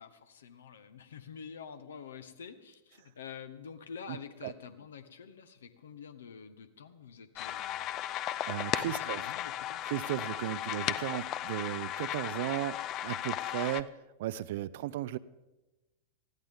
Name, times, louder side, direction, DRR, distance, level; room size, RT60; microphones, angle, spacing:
voice 1, 0.0-7.9 8.8-9.8, left 6 dB, 65° left, 11 dB, 1.1 m, -48 dB
voice 2, 4.1-4.5 8.5-9.2 9.9-15.2, right 14 dB, 55° right, 18 dB, 0.5 m, -36 dB
sound 1, 7.4-13.8, left 12 dB, 35° left, 0.6 m, -36 dB
19.5 x 15.0 x 3.6 m, 1.1 s
figure-of-eight pair, 90°, 0 cm